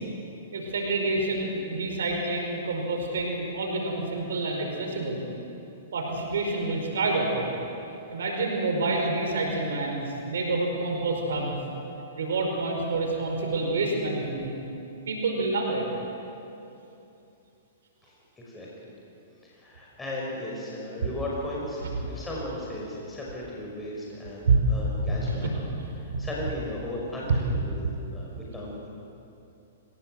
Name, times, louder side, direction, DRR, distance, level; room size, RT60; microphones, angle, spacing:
voice 1, 0.5-5.2 5.9-7.5 8.1-11.6 12.2-14.5 15.1-15.9 24.4-24.6 25.0-26.2 27.3-27.4, right 3 dB, 75° right, 1 dB, 5.1 m, -28 dB
voice 2, 18.0-18.9 19.4-25.5 26.0-28.9, left 1 dB, 10° left, -4 dB, 5.7 m, -36 dB
25.5 x 17.5 x 7.8 m, 2.8 s
hypercardioid pair, 120°, 0 cm